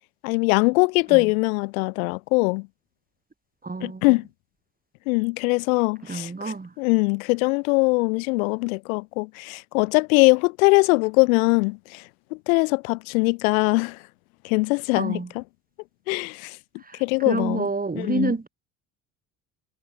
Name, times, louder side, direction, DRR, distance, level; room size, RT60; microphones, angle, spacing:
voice 1, 0.2-2.7 3.8-4.2 5.1-12.0 12.3-14.0 14.4-15.4 16.1-16.6 17.0-17.7 18.0-18.3, left 27 dB, 80° left, 1.8 m, -22 dB
voice 2, 3.6-4.0 6.0-6.7 14.9-15.3 16.8-18.5, right 3 dB, 20° right, 4.7 m, -29 dB
hypercardioid pair, 70°, 41 cm